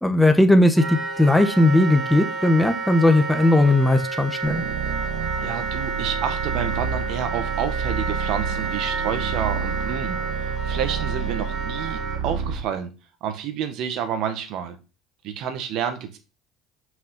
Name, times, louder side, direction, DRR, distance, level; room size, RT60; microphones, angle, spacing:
voice 1, 0.0-4.6, left 1 dB, 5° left, 6 dB, 1.3 m, -18 dB
Wind instrument woodwind instrument, 0.7-12.2, right 4 dB, 45° right, 3.1 m, -30 dB
sound 1, 4.4-12.7, right 6 dB, 80° right, 1.7 m, -29 dB
voice 2, 5.4-12.9 13.2-14.8 15.2-16.2, right 8 dB, 60° right, 9 dB, 1.7 m, -29 dB
6.0 x 5.8 x 5.9 m, 0.32 s
hypercardioid pair, 75°, 0 cm